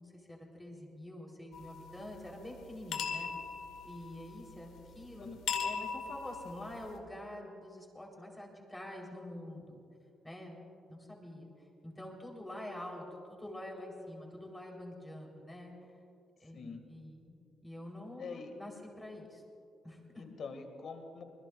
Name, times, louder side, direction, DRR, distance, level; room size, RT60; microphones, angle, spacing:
voice 1, 0.0-3.3 3.8-5.3 5.6-9.8 10.2-10.6 10.9-15.7 16.4-19.4 19.8-20.2, left 1 dB, 10° left, -1 dB, 3.9 m, -47 dB
sound 1, 1.5-7.0, left 6 dB, 80° left, 1.6 m, -41 dB
voice 2, 16.5-16.8 18.2-18.5 20.1-21.2, left 5 dB, 60° left, 5 dB, 2.1 m, -44 dB
25.5 x 21.0 x 2.5 m, 2.5 s
cardioid pair, 90°, 0 cm